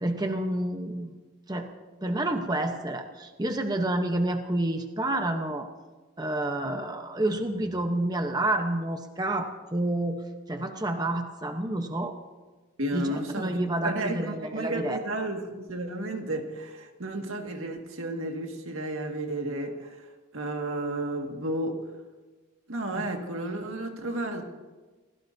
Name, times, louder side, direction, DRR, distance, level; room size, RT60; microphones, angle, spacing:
voice 1, 0.0-1.1 1.5-1.7 2.0-5.7 6.2-12.1 12.9-15.0 23.0-23.1, right 1 dB, 20° right, 5 dB, 0.9 m, -29 dB
voice 2, 12.8-13.6 13.8-20.0 20.3-21.8 22.7-24.4, right 1 dB, 85° right, 3 dB, 2.0 m, -32 dB
27.5 x 16.5 x 2.8 m, 1.3 s
head